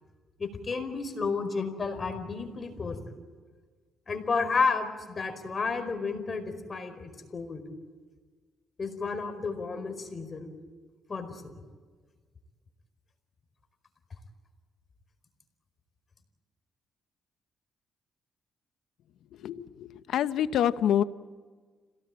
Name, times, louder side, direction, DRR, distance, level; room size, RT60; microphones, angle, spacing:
voice 1, 0.4-3.0 4.1-7.6 8.8-10.5 11.1-11.5, left 4 dB, 35° left, 8 dB, 4.7 m, -31 dB
voice 2, 19.4-21.0, left 10 dB, 75° left, 13 dB, 0.9 m, -26 dB
27.5 x 18.0 x 8.9 m, 1.5 s
cardioid pair, 90°, 0 cm